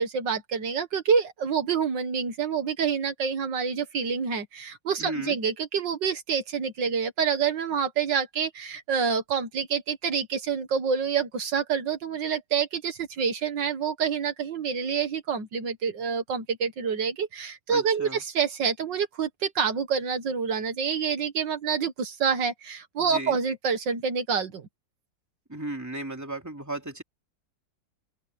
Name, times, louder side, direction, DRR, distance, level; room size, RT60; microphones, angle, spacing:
voice 1, 0.0-24.7, right 6 dB, 75° right, 2.1 m, -27 dB
voice 2, 5.0-5.4 17.7-18.2 23.0-23.4 25.5-27.0, right 2 dB, 10° right, 3.1 m, -35 dB
open air
omnidirectional pair, 2.0 m